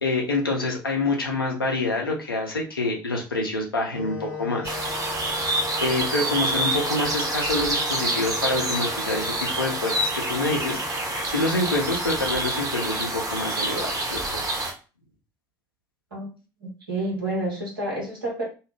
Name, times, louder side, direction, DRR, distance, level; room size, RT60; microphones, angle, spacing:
voice 1, 0.0-4.7 5.8-10.8 11.3-14.7, left 2 dB, 90° left, -1 dB, 0.6 m, -27 dB
sound 1, 3.9-11.9, left 5 dB, 70° left, 1.0 m, -39 dB
sound 2, 4.6-14.7, right 1 dB, 30° right, 0.9 m, -27 dB
voice 2, 16.6-18.5, right 1 dB, 85° right, -4 dB, 1.1 m, -29 dB
2.7 x 2.0 x 3.1 m, 0.33 s
figure-of-eight pair, 55°, 12 cm